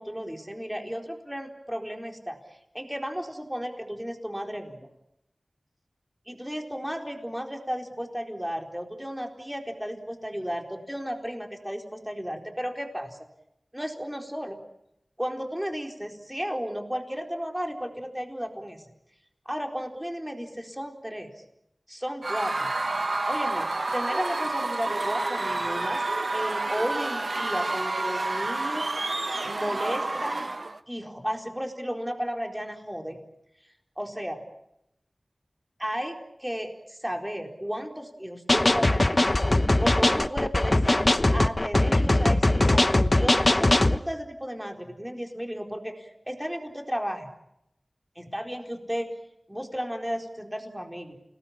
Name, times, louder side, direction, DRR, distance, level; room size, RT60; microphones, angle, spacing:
voice 1, 0.0-2.4 2.7-4.9 6.3-13.2 13.7-14.6 15.2-18.8 19.5-21.3 21.9-22.7 23.3-23.7 23.9-26.0 26.3-28.8 29.4-30.5 30.9-33.2 34.0-34.4 35.8-39.2 39.8-41.0 41.3-47.3 48.2-49.1 49.5-51.2, equal, 10° right, 3 dB, 4.3 m, -34 dB
Screaming / Cheering / Crowd, 22.2-30.8, right 2 dB, 65° right, 1.1 m, -29 dB
sound 1, 38.5-44.0, left 1 dB, 35° left, 1.0 m, -21 dB
29.5 x 19.5 x 8.7 m, 0.85 s
wide cardioid pair, 55°, 0 cm